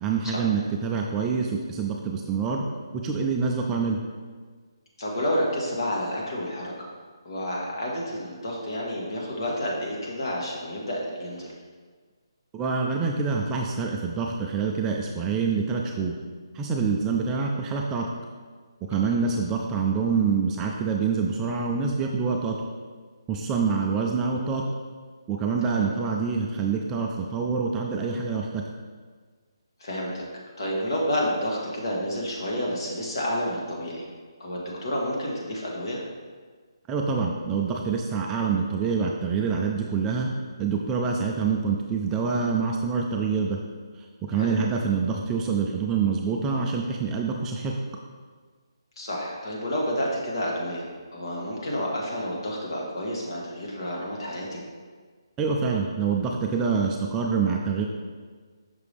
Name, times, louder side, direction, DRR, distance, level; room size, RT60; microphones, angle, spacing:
voice 1, 0.0-2.6 3.0-4.0 12.5-16.2 16.5-18.1 18.9-22.6 23.3-24.6 25.3-28.6 36.9-40.3 40.6-43.6 44.3-47.8 55.4-57.9, right 5 dB, 10° right, -1 dB, 0.3 m, -26 dB
voice 2, 5.0-6.9 7.2-11.5 18.9-19.2 25.6-25.9 29.8-30.2 30.6-34.0 34.4-36.0 44.3-44.5 49.0-50.9 51.1-54.6, equal, 60° left, -3 dB, 1.7 m, -30 dB
5.9 x 4.7 x 3.5 m, 1.5 s
hypercardioid pair, 165°, 3 cm